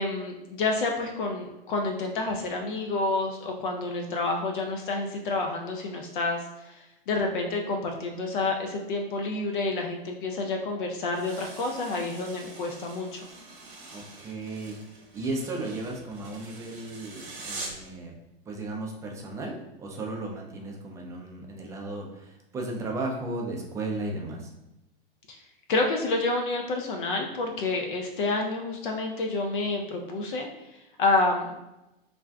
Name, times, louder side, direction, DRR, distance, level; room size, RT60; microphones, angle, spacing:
voice 1, 0.0-13.2 25.3-25.4 25.7-30.5 31.0-31.5, left 3 dB, 60° left, 2 dB, 0.5 m, -29 dB
sound 1, 11.1-17.9, right 2 dB, 35° right, 0.9 m, -44 dB
voice 2, 13.9-14.8 15.1-18.1 18.5-24.5, right 2 dB, 10° right, 0 dB, 0.3 m, -35 dB
2.5 x 2.2 x 3.3 m, 0.94 s
hypercardioid pair, 105°, 29 cm